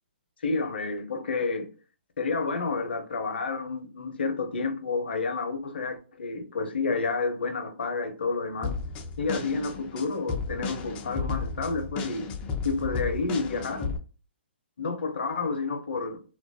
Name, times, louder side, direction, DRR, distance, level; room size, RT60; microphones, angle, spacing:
voice 1, 0.4-1.7 2.2-8.7 9.2-12.3 12.6-13.9 14.8-16.2, left 4 dB, 75° left, 0.5 m, -30 dB
sound 1, 8.6-14.0, left 4 dB, 20° left, 0.3 m, -33 dB
2.3 x 2.1 x 2.5 m
hypercardioid pair, 135°, 6 cm